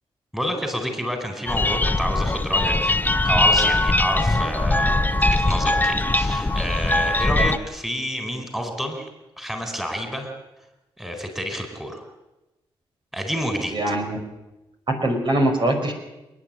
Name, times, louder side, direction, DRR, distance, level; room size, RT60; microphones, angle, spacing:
voice 1, 0.3-9.1 9.4-10.3 11.0-12.0 13.1-14.0, equal, 5° right, 5 dB, 4.5 m, -29 dB
sound 1, 1.5-7.6, left 2 dB, 20° left, 0.9 m, -21 dB
voice 2, 13.7-14.2 14.9-15.9, right 1 dB, 55° right, 3 dB, 5.8 m, -22 dB
29.0 x 9.9 x 9.0 m, 1.0 s
cardioid pair, 60°, 10 cm